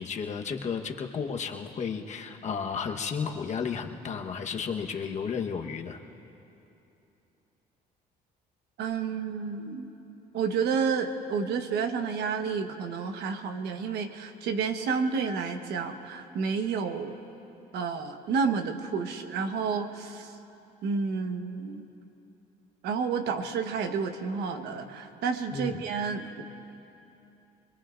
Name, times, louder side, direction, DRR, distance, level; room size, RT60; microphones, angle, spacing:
voice 1, 0.0-6.0 25.5-25.8, left 6 dB, 45° left, 3 dB, 1.1 m, -33 dB
voice 2, 8.8-9.9 10.3-17.1 17.7-20.4 20.8-21.8 22.8-26.4, right 5 dB, 75° right, 6 dB, 1.2 m, -30 dB
25.0 x 22.0 x 2.5 m, 2.9 s
cardioid pair, 110°, 17 cm